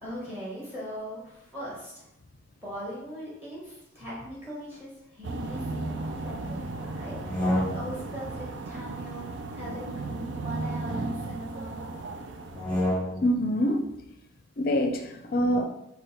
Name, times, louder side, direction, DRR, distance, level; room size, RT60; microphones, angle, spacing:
voice 1, 0.0-2.1 2.6-9.2 9.5-11.9, equal, 10° right, -6 dB, 1.5 m, -40 dB
sound 1, 5.2-13.0, right 3 dB, 65° right, 0.4 m, -35 dB
sound 2, 7.1-8.2 9.5-11.1 12.4-13.4, left 1 dB, 5° left, 1.0 m, -31 dB
voice 2, 13.2-13.8 14.6-15.6, equal, 50° left, 4 dB, 0.5 m, -25 dB
5.1 x 2.2 x 4.2 m, 0.83 s
head